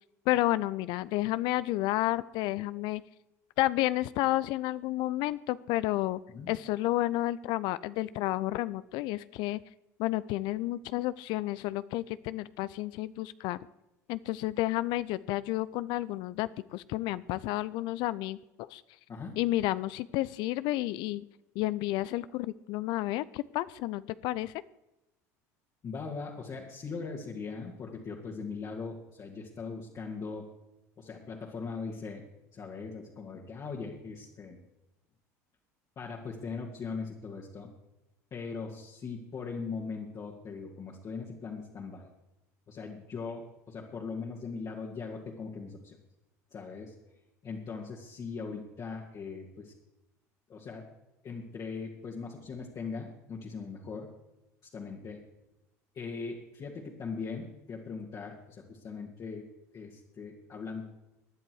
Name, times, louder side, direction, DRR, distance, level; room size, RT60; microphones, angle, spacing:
voice 1, 0.3-3.0 3.6-6.2 6.5-9.6 10.0-13.6 14.1-18.8 19.4-21.2 21.6-24.5, left 16 dB, 60° left, 17 dB, 0.5 m, -31 dB
voice 2, 25.8-30.5 31.0-32.2 32.5-34.6 36.0-37.7 38.3-42.1 42.7-46.0 46.5-47.0 47.4-49.7 50.5-50.9 51.2-54.1 54.6-55.2 55.9-59.5 59.7-60.8, left 4 dB, 40° left, -2 dB, 2.4 m, -40 dB
19.5 x 11.0 x 4.8 m, 0.93 s
hypercardioid pair, 75°, 9 cm